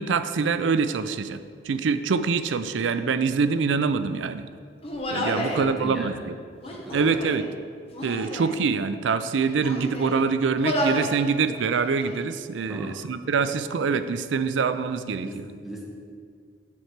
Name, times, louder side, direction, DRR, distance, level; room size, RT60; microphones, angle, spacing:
voice 1, 0.0-1.4 1.6-4.5 5.1-6.3 6.9-7.5 8.0-15.4, right 5 dB, 85° right, 11 dB, 0.4 m, -25 dB
Human voice, 4.8-5.6 6.6-7.5 7.9-8.6 9.2-10.2 10.6-11.2 11.5-12.2, equal, 35° left, 1.0 m, -31 dB
voice 2, 5.3-6.2 6.7-7.1 12.7-13.0 13.4-13.5 15.2-15.9, equal, ahead, -3 dB, 1.3 m, -37 dB
7.1 x 4.5 x 6.6 m, 2.1 s
head